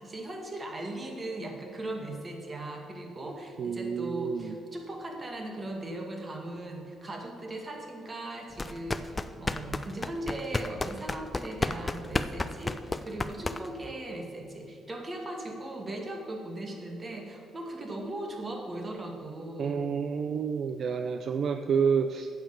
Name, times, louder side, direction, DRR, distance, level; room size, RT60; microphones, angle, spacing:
voice 1, 0.0-19.8, right 1 dB, 30° right, 2 dB, 1.9 m, -38 dB
voice 2, 3.6-4.6 19.6-22.3, right 6 dB, 60° right, 8 dB, 0.4 m, -29 dB
sound 1, 8.5-13.9, left 2 dB, 20° left, 0.5 m, -32 dB
8.9 x 7.3 x 7.0 m, 2.6 s
cardioid pair, 90°, 0 cm